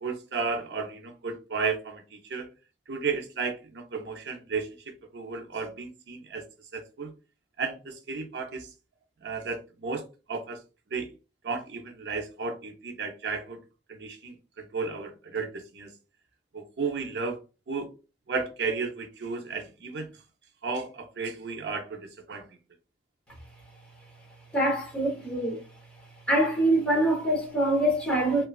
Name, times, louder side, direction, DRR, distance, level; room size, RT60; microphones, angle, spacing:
voice 1, 0.0-2.5 2.9-6.4 6.7-7.1 7.6-8.7 9.2-10.6 10.9-11.1 11.4-13.6 13.9-15.9 16.5-17.4 17.7-17.9 18.3-20.1 20.6-22.0 22.3-22.5, right 4 dB, 70° right, 0.5 m, -33 dB
voice 2, 24.5-25.6 26.3-28.4, right 1 dB, 5° left, 0.8 m, -24 dB
2.8 x 2.2 x 2.3 m
head